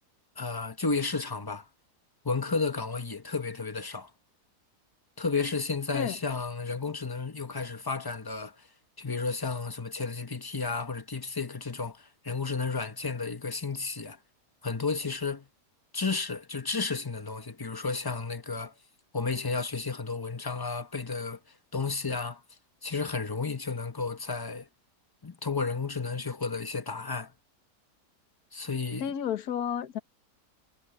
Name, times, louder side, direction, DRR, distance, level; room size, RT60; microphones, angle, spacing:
voice 1, 0.4-1.7 2.2-4.1 5.2-8.7 9.0-14.2 14.6-15.5 15.9-18.7 19.1-21.4 21.7-22.4 22.8-24.7 25.2-27.3 28.5-29.1, left 4 dB, 15° left, 0.9 m, -32 dB
voice 2, 29.0-30.0, left 9 dB, 65° left, 1.6 m, -31 dB
omnidirectional pair, 1.8 m